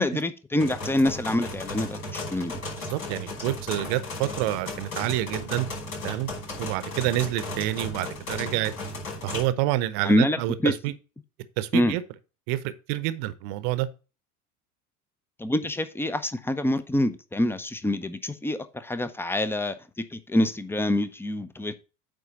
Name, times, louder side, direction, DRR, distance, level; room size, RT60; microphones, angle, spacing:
voice 1, 0.0-2.5 10.0-10.7 11.7-12.0 15.4-19.7 20.1-21.7, left 1 dB, 5° left, 0.7 m, -26 dB
sound 1, 0.6-9.4, left 2 dB, 65° left, 4.9 m, -35 dB
voice 2, 2.8-5.7 6.0-6.3 6.6-8.7 9.2-10.9 11.6-12.0 12.5-13.9, right 15 dB, 55° right, 0.9 m, -28 dB
9.1 x 3.9 x 5.6 m
figure-of-eight pair, 70°, 44 cm